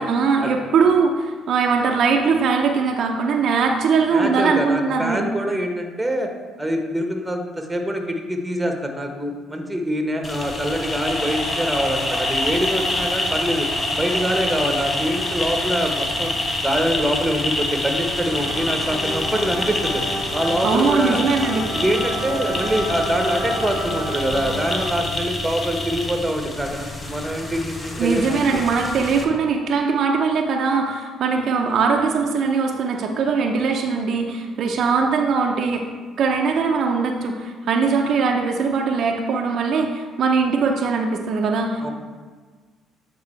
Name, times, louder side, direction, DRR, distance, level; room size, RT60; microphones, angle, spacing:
voice 1, 0.0-5.3 20.6-21.7 28.0-35.9 36.2-41.9, right 5 dB, 65° right, 2 dB, 0.6 m, -21 dB
voice 2, 4.1-6.3 6.6-13.7 14.0-16.3 16.6-20.0 20.3-21.2 21.7-28.5 41.8-41.9, equal, 10° right, 3 dB, 1.1 m, -24 dB
sound 1, 10.2-29.2, left 1 dB, 30° left, 1.0 m, -27 dB
sound 2, 18.3-24.9, equal, 60° left, 1.9 m, -30 dB
8.4 x 3.7 x 4.4 m, 1.4 s
supercardioid pair, 65°, 0 cm